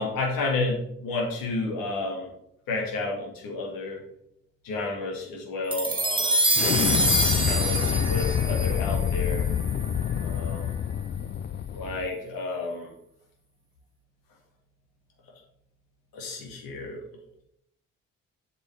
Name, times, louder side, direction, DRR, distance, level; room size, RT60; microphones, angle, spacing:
voice 1, 0.0-2.3 2.7-4.0 4.6-6.5 7.5-9.5 10.2-10.7 11.7-12.9 16.1-17.0, left 3 dB, 70° left, 1 dB, 2.1 m, -31 dB
sound 1, 5.7-10.2, right 1 dB, 15° right, 1.8 m, -26 dB
Explosion, 6.6-12.1, left 9 dB, 30° left, 0.4 m, -27 dB
7.8 x 7.5 x 3.5 m, 0.77 s
hypercardioid pair, 40°, 36 cm